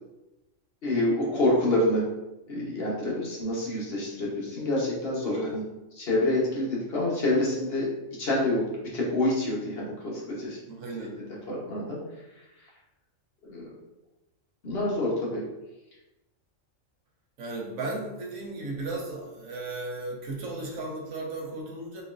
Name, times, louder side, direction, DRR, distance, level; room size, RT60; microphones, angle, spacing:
voice 1, 0.8-2.0 2.5-5.6 6.0-7.9 8.2-8.6 8.9-10.6 11.5-12.0 13.4-13.7 14.6-15.4, left 1 dB, 50° left, -4 dB, 1.1 m, -27 dB
voice 2, 10.7-11.4 17.4-22.0, right 2 dB, 80° right, -1 dB, 1.2 m, -35 dB
4.1 x 3.0 x 2.4 m, 0.99 s
omnidirectional pair, 1.4 m